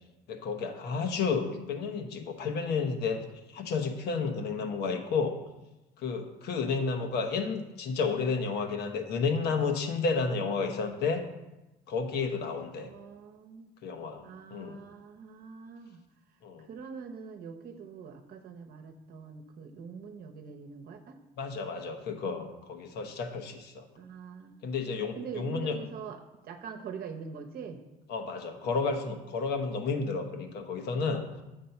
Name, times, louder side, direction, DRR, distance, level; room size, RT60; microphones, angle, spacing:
voice 1, 0.3-3.2 3.5-5.4 6.0-11.2 11.9-12.9 13.8-14.2 14.5-14.8 16.4-16.7 21.4-23.9 24.6-25.8 28.1-31.2, left 4 dB, 75° left, 6 dB, 1.0 m, -31 dB
voice 2, 12.7-13.7 14.2-16.0 16.7-21.2 24.0-24.5 25.1-27.8, right 6 dB, 60° right, 6 dB, 0.8 m, -43 dB
7.3 x 4.2 x 5.8 m, 1.0 s
cardioid pair, 110°, 17 cm